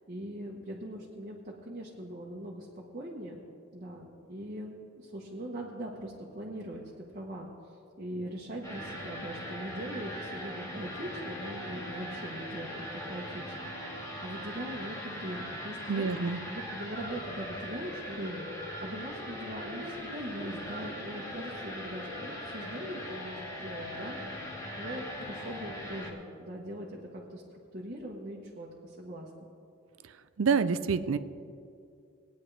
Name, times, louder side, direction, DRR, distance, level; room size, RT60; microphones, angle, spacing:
voice 1, 0.1-3.4 3.7-7.5 8.0-29.5, right 1 dB, 40° right, -4 dB, 1.1 m, -41 dB
sound 1, 8.6-26.1, equal, 15° left, 1.8 m, -40 dB
voice 2, 15.9-16.4 30.4-31.2, right 5 dB, 80° right, 13 dB, 0.5 m, -27 dB
20.0 x 9.3 x 3.3 m, 2.4 s
head